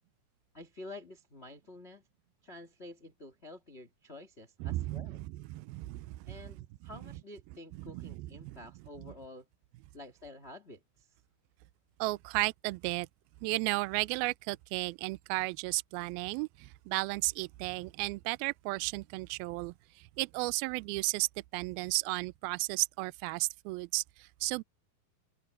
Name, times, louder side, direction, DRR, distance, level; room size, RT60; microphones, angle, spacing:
voice 1, 0.5-2.0 2.4-5.2 6.3-9.4 9.9-11.1, left 2 dB, 40° left, 0.8 m, -49 dB
voice 2, 4.6-6.4 7.8-8.6 9.0-9.1 12.0-13.1 13.4-24.6, right 23 dB, 80° right, 2.2 m, -34 dB
open air
omnidirectional pair, 4.9 m